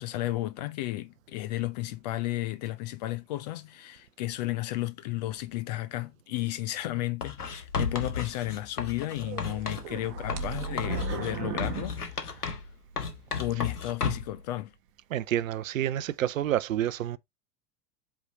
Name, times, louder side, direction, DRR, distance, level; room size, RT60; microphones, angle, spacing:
voice 1, 0.0-12.6 13.4-14.7, left 16 dB, 30° left, 0.4 m, -33 dB
Writing, 7.2-9.9 10.3-12.7 13.0-14.4, left 5 dB, 75° left, 1.3 m, -34 dB
sound 1, 7.6-8.2 10.0-11.2 11.6-11.7, left 3 dB, 55° left, 1.7 m, -36 dB
sound 2, 9.2-12.9 13.4-13.5 14.1-14.2, right 9 dB, 40° right, 1.1 m, -37 dB
voice 2, 15.1-17.2, right 12 dB, 60° right, 0.6 m, -28 dB
8.0 x 3.7 x 3.7 m
figure-of-eight pair, 90°, 46 cm